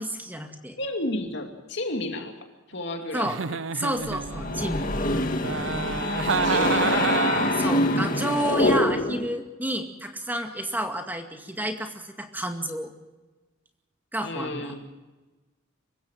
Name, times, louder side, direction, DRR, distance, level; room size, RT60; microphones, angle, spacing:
voice 1, 0.0-0.8 3.1-3.4 3.7-4.9 7.5-12.9 14.1-14.7, right 1 dB, 10° right, 5 dB, 2.1 m, -30 dB
voice 2, 0.8-2.3 2.7-3.6 6.4-7.1 14.2-14.8, left 1 dB, 60° left, 4 dB, 2.7 m, -32 dB
Giggle, 3.1-4.6 5.4-7.7, right 6 dB, 70° right, 0.6 m, -28 dB
sound 1, 4.1-9.3, left 1 dB, 45° left, 2.0 m, -25 dB
25.0 x 15.5 x 7.4 m, 1.2 s
head